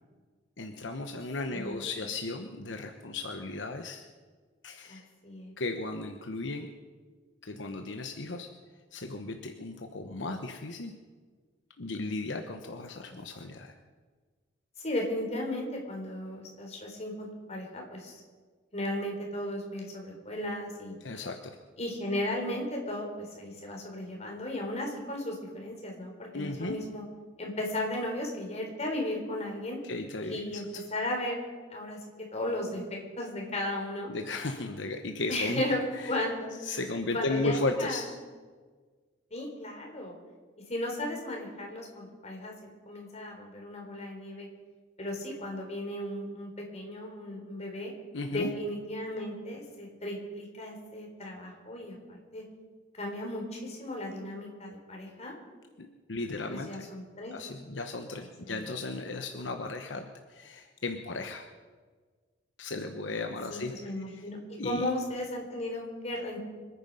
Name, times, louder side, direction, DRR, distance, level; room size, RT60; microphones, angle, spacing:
voice 1, 0.6-4.0 4.6-5.0 5.6-6.7 7.4-8.5 8.9-10.9 11.8-13.7 21.0-21.6 26.3-26.8 29.8-30.8 34.1-35.6 35.9-36.2 36.6-38.1 48.1-48.5 55.8-56.9 57.3-61.5 62.6-64.2 64.6-64.9, left 2 dB, 75° left, 5 dB, 1.1 m, -35 dB
voice 2, 1.5-2.0 4.9-5.5 13.1-13.2 14.8-18.1 18.7-20.9 21.8-27.0 27.4-29.8 30.2-30.6 30.9-31.4 31.7-32.0 32.3-34.1 35.3-35.8 36.1-36.5 37.1-38.0 39.3-40.1 40.7-44.5 45.0-47.9 48.3-52.4 53.0-55.3 56.5-57.3 58.5-58.6 63.5-64.4 64.6-66.4, left 1 dB, 35° left, 0 dB, 4.0 m, -35 dB
26.5 x 9.8 x 5.5 m, 1.5 s
head